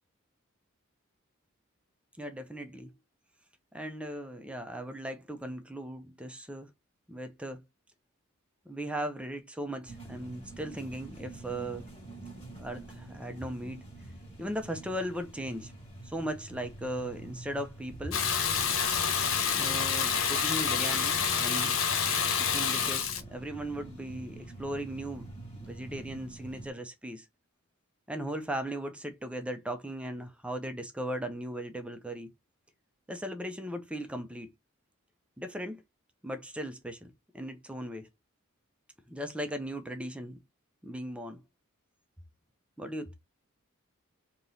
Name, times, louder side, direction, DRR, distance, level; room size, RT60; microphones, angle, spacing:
voice 1, 2.2-2.9 3.7-6.7 7.1-7.6 8.7-11.9 12.6-13.8 14.4-15.7 16.0-18.2 19.5-21.8 22.3-25.3 25.6-27.2 28.1-32.3 33.1-34.5 35.4-35.8 36.2-38.1 39.1-40.4 40.8-41.4 42.8-43.1, right 1 dB, 5° right, 0.6 m, -38 dB
sound 1, 9.8-26.7, right 2 dB, 25° left, 2.0 m, -46 dB
Water tap faucet / Bathtub (filling or washing), 18.1-23.2, left 7 dB, 70° left, 0.7 m, -28 dB
3.5 x 3.0 x 3.9 m
head